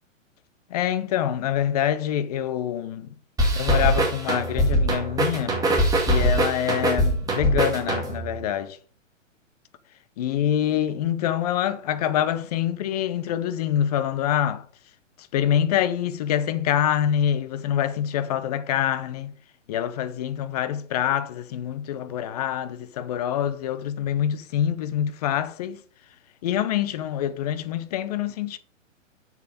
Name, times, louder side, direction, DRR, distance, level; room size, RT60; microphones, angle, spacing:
voice 1, 0.7-3.1 3.5-5.6 6.0-8.8 10.2-14.6 15.3-19.3 19.7-25.8 26.4-28.6, left 10 dB, 30° left, 0.8 m, -25 dB
sound 1, 3.4-8.3, right 1 dB, 10° right, 2.2 m, -22 dB
7.5 x 6.8 x 5.4 m
figure-of-eight pair, 125°, 39 cm